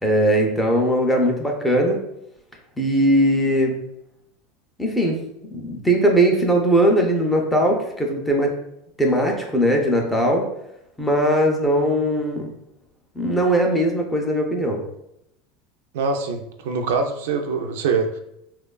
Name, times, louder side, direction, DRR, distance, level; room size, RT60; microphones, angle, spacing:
voice 1, 0.0-2.0 2.8-3.8 4.8-5.2 5.5-8.5 9.0-10.4 11.0-12.5 13.2-14.8, right 1 dB, 5° left, 0 dB, 0.3 m, -19 dB
voice 2, 15.9-18.2, right 4 dB, 80° right, 5 dB, 0.3 m, -24 dB
2.9 x 2.2 x 2.2 m, 0.81 s
supercardioid pair, 165°, 0 cm